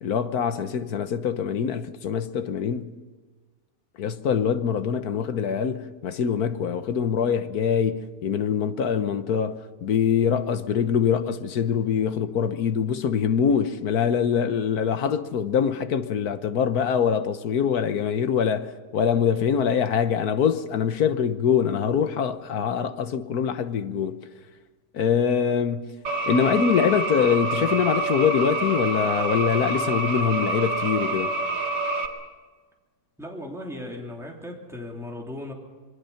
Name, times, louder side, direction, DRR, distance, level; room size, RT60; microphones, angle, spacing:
voice 1, 0.0-2.9 4.0-24.2 24.9-25.9 26.3-31.3, left 7 dB, 65° left, 1.5 m, -24 dB
sound 1, 26.1-32.1, right 2 dB, 85° right, 2.6 m, -27 dB
voice 2, 33.2-35.5, left 1 dB, ahead, 3.1 m, -37 dB
26.5 x 22.0 x 5.7 m
omnidirectional pair, 1.8 m